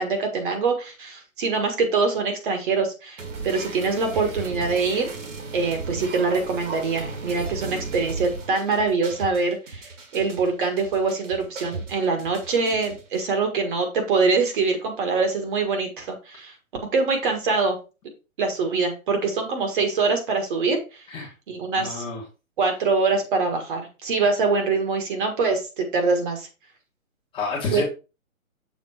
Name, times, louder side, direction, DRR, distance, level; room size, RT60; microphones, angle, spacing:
voice 1, 0.0-5.1 5.5-16.5 16.9-17.8 18.4-20.8 21.5-22.0 22.6-26.5 27.7-27.8, right 4 dB, 35° right, 5 dB, 1.6 m, -24 dB
sound 1, 3.2-13.2, right 4 dB, 60° right, 2.1 m, -36 dB
voice 2, 21.8-22.2 27.3-27.8, left 4 dB, 10° left, -3 dB, 1.3 m, -29 dB
7.0 x 3.7 x 4.8 m, 0.30 s
hypercardioid pair, 155°, 42 cm